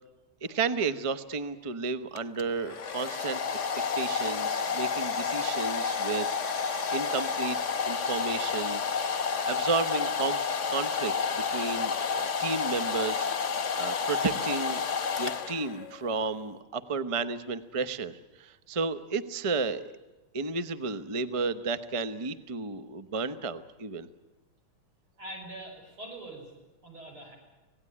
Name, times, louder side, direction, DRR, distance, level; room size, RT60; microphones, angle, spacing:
voice 1, 0.4-3.6 3.9-7.6 7.8-8.8 9.1-10.4 10.7-14.9 15.2-19.9 20.3-24.1, right 4 dB, 40° right, 12 dB, 0.4 m, -33 dB
Domestic sounds home sounds, 2.2-15.9, left 5 dB, 45° left, 1.1 m, -30 dB
voice 2, 25.2-26.5 26.8-27.3, right 1 dB, 80° right, 1 dB, 7.2 m, -43 dB
26.5 x 17.5 x 9.9 m, 1.1 s
omnidirectional pair, 2.3 m